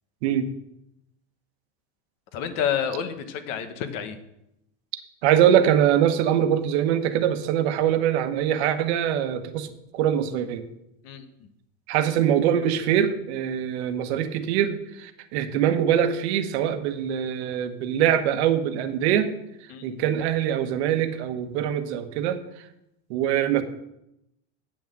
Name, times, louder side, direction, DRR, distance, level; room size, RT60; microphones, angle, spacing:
voice 1, 2.3-4.2 11.0-11.3 19.7-20.0, left 8 dB, 50° left, 10 dB, 1.1 m, -29 dB
voice 2, 5.2-10.6 11.9-19.3 19.8-22.4 23.1-23.6, right 10 dB, 75° right, 9 dB, 1.1 m, -23 dB
8.6 x 6.0 x 7.6 m, 0.84 s
cardioid pair, 175°, 33 cm